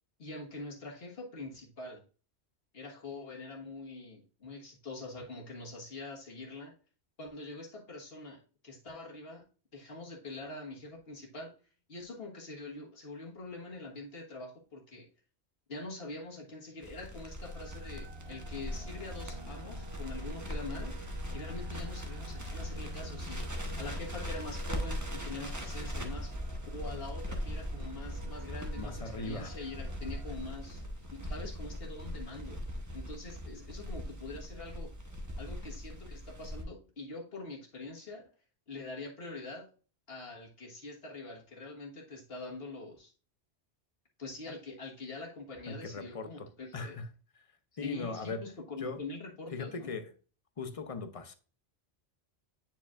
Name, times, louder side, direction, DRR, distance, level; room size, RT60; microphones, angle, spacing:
voice 1, 0.2-2.0 2.7-6.7 7.2-9.5 9.7-11.5 11.9-15.1 15.7-21.0 21.3-26.3 26.7-30.8 31.1-32.6 32.9-34.9 35.4-38.2 38.7-39.7 40.1-43.1 44.2-47.0 47.8-50.0, left 3 dB, 60° left, 1.6 m, -44 dB
Crackle, 16.8-36.6, equal, 15° right, 0.9 m, -40 dB
sound 1, 17.4-30.3, right 2 dB, 70° right, 1.0 m, -49 dB
voice 2, 28.8-29.5 45.7-46.5 46.7-47.1 47.3-47.4 47.8-48.4 48.8-49.0 49.5-50.1 50.6-51.3, left 3 dB, 40° left, 0.6 m, -39 dB
8.9 x 4.9 x 2.4 m
omnidirectional pair, 1.2 m